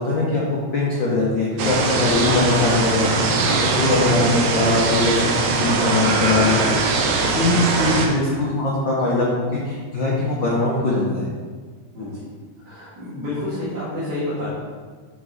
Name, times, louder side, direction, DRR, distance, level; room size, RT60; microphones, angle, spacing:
voice 1, 0.0-7.0 7.4-9.3 9.5-11.3, left 2 dB, 80° left, -5 dB, 1.0 m, -21 dB
sound 1, 1.6-8.1, right 3 dB, 75° right, 1.4 m, -21 dB
voice 2, 12.6-14.5, left 1 dB, 40° right, -11 dB, 1.8 m, -29 dB
7.8 x 4.2 x 3.9 m, 1.5 s
omnidirectional pair, 3.5 m